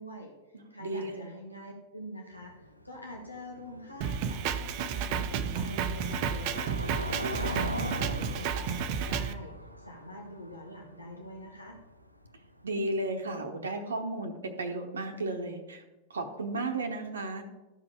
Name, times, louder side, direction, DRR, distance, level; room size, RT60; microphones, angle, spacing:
voice 1, 0.0-6.7 7.2-11.8, equal, 85° left, 0 dB, 1.2 m, -44 dB
voice 2, 0.8-1.3 12.6-15.8 16.1-17.4, right 2 dB, 70° right, 4 dB, 0.9 m, -34 dB
Car passing by / Engine, 2.3-13.0, equal, 90° right, 0.5 m, -40 dB
Drum kit, 4.0-9.3, right 7 dB, 45° right, 0.6 m, -32 dB
13.5 x 4.8 x 4.8 m, 1.1 s
figure-of-eight pair, 90°, 0 cm